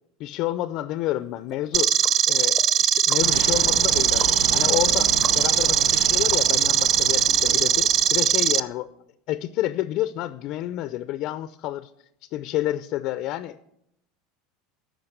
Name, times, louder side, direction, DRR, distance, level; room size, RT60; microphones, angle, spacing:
voice 1, 0.2-2.0 2.3-8.9 9.3-11.9 12.3-13.6, left 15 dB, 55° left, 13 dB, 0.5 m, -29 dB
sound 1, 1.5-6.9 7.3-7.4, right 1 dB, 10° right, 1.0 m, -41 dB
sound 2, 1.7-8.6, right 9 dB, 40° right, 0.4 m, -20 dB
sound 3, 3.2-8.6, right 3 dB, 90° right, 1.9 m, -34 dB
13.5 x 5.2 x 7.9 m, 0.78 s
supercardioid pair, 115°, 0 cm